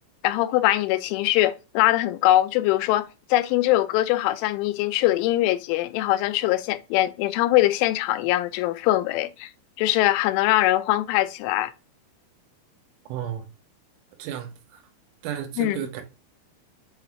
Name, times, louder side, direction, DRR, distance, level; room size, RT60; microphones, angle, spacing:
voice 1, 0.2-9.5 9.8-11.7 15.6-15.8, left 15 dB, 90° left, 3.1 m, -22 dB
voice 2, 13.1-13.5 14.2-14.8 15.2-16.0, right 10 dB, 85° right, 3.6 m, -33 dB
8.1 x 4.0 x 2.9 m
omnidirectional pair, 5.4 m